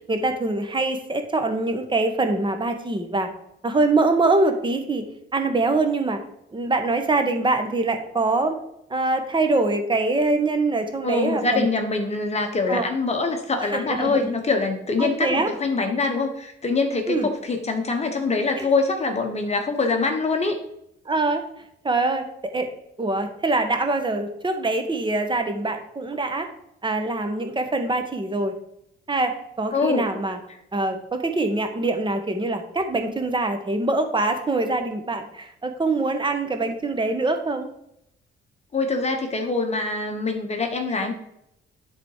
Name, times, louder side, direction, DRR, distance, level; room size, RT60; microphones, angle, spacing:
voice 1, 0.1-3.3 3.6-5.0 5.3-6.2 6.5-8.6 8.9-11.7 12.7-12.9 13.6-14.3 15.0-15.5 17.1-17.3 18.6-18.7 21.0-21.4 21.8-22.7 23.0-26.5 26.8-28.5 29.1-30.4 30.7-37.7, right 2 dB, 25° right, 6 dB, 1.4 m, -24 dB
voice 2, 11.0-20.6 29.7-30.1 38.7-41.1, left 3 dB, 35° left, 4 dB, 1.3 m, -24 dB
10.5 x 4.1 x 4.9 m, 0.78 s
cardioid pair, 90°, 20 cm